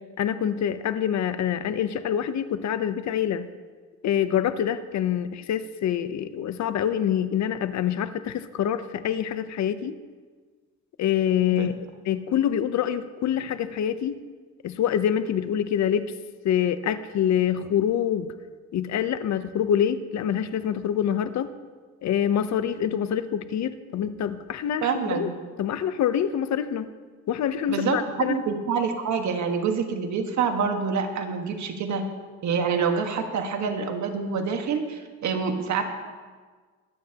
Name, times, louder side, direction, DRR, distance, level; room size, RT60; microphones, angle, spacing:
voice 1, 0.2-3.5 4.0-10.0 11.0-11.7 12.1-14.2 14.6-16.1 16.4-18.3 18.7-21.5 22.0-25.3 25.6-26.9 27.3-28.4, left 9 dB, 65° left, 12 dB, 0.7 m, -26 dB
voice 2, 24.8-25.3 27.7-32.0 32.4-35.8, right 6 dB, 70° right, 5 dB, 1.5 m, -26 dB
22.5 x 8.8 x 2.9 m, 1.5 s
cardioid pair, 90°, 30 cm